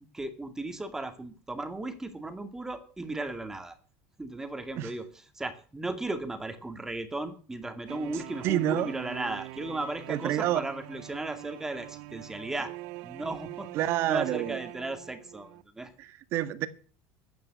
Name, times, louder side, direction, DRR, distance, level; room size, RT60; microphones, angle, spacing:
voice 1, 0.1-3.8 4.2-12.7 13.0-13.7 14.0-15.9, right 2 dB, 10° right, 8 dB, 2.3 m, -36 dB
sound 1, 7.9-15.6, right 19 dB, 70° right, 0.8 m, -43 dB
voice 2, 8.4-8.9 10.1-10.6 13.7-14.6 16.0-16.7, right 13 dB, 55° right, 12 dB, 1.7 m, -28 dB
14.0 x 9.4 x 8.0 m, 0.41 s
cardioid pair, 135°, 5 cm